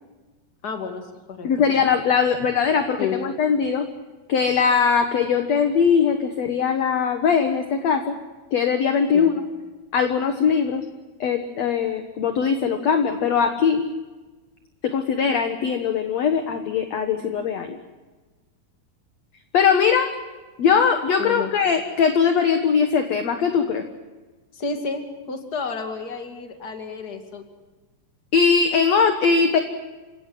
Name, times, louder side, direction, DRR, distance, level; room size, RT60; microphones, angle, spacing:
voice 1, 0.6-1.5 3.0-3.2 9.1-9.3 21.2-21.5 24.5-27.4, left 5 dB, 30° left, 4 dB, 2.3 m, -31 dB
voice 2, 1.4-3.9 4.3-8.2 8.5-9.4 9.9-10.9 11.2-13.9 14.8-17.8 19.5-20.1 20.6-23.8 28.3-29.6, left 6 dB, 60° left, 6 dB, 2.0 m, -20 dB
29.0 x 17.0 x 6.2 m, 1.3 s
omnidirectional pair, 4.6 m